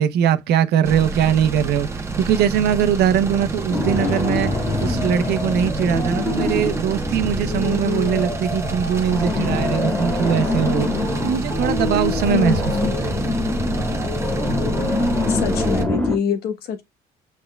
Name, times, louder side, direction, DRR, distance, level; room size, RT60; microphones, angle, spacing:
voice 1, 0.0-1.9 2.2-4.5 4.8-10.9 11.2-13.1, right 8 dB, 75° right, 0.8 m, -21 dB
sound 1, 0.8-15.8, right 3 dB, 15° right, 1.1 m, -28 dB
sound 2, 3.7-16.2, left 2 dB, 10° left, 1.8 m, -25 dB
sound 3, 3.8-7.9, left 3 dB, 40° left, 1.1 m, -35 dB
voice 2, 12.3-13.0 15.3-16.8, left 6 dB, 70° left, 1.2 m, -25 dB
6.3 x 3.6 x 2.3 m
cardioid pair, 110°, 17 cm